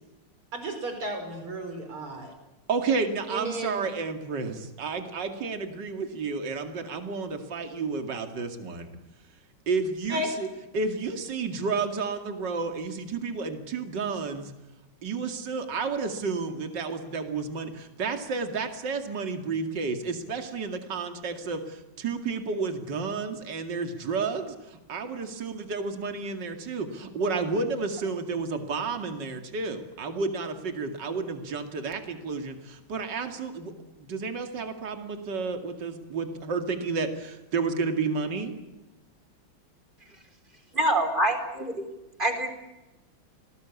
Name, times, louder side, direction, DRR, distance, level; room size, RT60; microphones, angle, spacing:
voice 1, 0.5-2.3 3.3-3.9 10.1-10.3, right 1 dB, 90° right, 6 dB, 6.0 m, -33 dB
voice 2, 2.7-8.9 9.7-10.5 10.7-14.5 15.0-33.7 34.0-38.6, right 4 dB, 55° right, 6 dB, 2.9 m, -31 dB
voice 3, 40.7-41.7 42.2-42.5, right 1 dB, 20° right, 6 dB, 3.8 m, -25 dB
28.0 x 19.5 x 8.5 m, 0.99 s
omnidirectional pair, 2.3 m